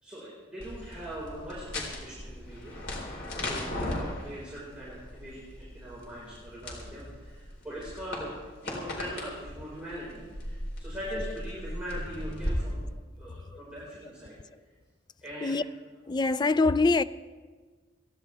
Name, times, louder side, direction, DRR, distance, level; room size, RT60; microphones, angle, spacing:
voice 1, 0.0-2.8 3.4-8.3 8.6-12.8 13.2-14.4 15.2-15.6, equal, 5° right, 4.8 m, -41 dB
sound 1, 0.6-12.5, left 1 dB, 65° left, 4.3 m, -38 dB
voice 2, 16.1-17.0, left 3 dB, 20° left, 0.3 m, -24 dB
29.5 x 11.0 x 3.4 m
head